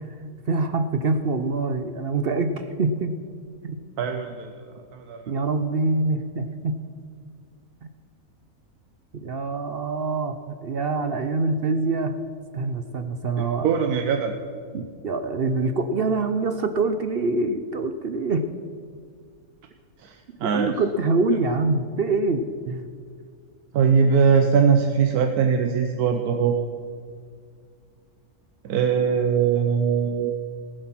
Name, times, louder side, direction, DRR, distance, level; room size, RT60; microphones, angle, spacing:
voice 1, 0.5-3.2 3.6-3.8 5.3-6.8 9.1-12.2 12.5-13.7 14.7-18.5 20.4-22.9, right 3 dB, 55° right, 8 dB, 0.7 m, -25 dB
voice 2, 4.0-4.6 4.9-5.2 13.4-14.3 20.0-20.7 23.7-26.6 28.6-30.3, right 6 dB, 85° right, 5 dB, 1.3 m, -21 dB
18.5 x 7.9 x 6.0 m, 2.1 s
omnidirectional pair, 1.6 m